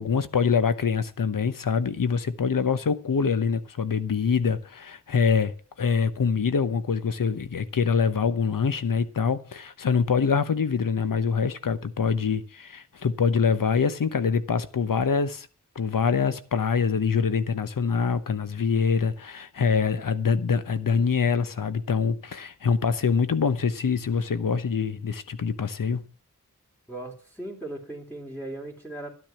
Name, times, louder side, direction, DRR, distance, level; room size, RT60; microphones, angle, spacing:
voice 1, 0.0-15.5 15.7-26.0, left 5 dB, 90° left, 1.0 m, -25 dB
voice 2, 26.9-29.1, right 1 dB, 5° left, 3.3 m, -37 dB
12.0 x 9.5 x 5.9 m
wide cardioid pair, 75°, 32 cm